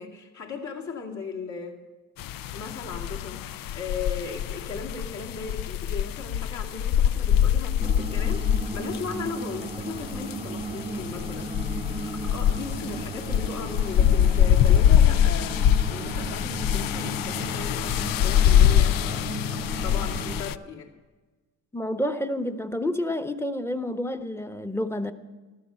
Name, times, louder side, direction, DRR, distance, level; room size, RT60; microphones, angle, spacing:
voice 1, 0.0-1.8 2.5-19.3 19.8-20.9, left 5 dB, 55° left, -1 dB, 2.5 m, -37 dB
sound 1, 2.2-20.5, left 10 dB, 75° left, 0.5 m, -24 dB
sound 2, 7.8-20.4, right 3 dB, 15° right, 0.6 m, -36 dB
voice 2, 21.7-25.1, left 1 dB, 5° left, 9 dB, 1.0 m, -29 dB
14.5 x 12.5 x 5.7 m, 1.3 s
cardioid pair, 75°, 34 cm